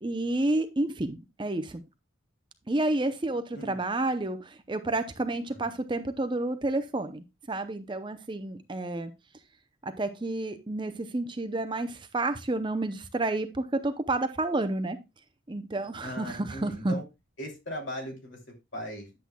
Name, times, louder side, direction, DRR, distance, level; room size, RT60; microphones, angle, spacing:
voice 1, 0.0-1.8 2.7-9.1 9.8-15.0 15.5-16.9, right 2 dB, 20° right, 0.6 m, -30 dB
voice 2, 16.0-17.0 17.4-19.2, equal, 60° left, 3.0 m, -39 dB
10.5 x 7.6 x 2.2 m
head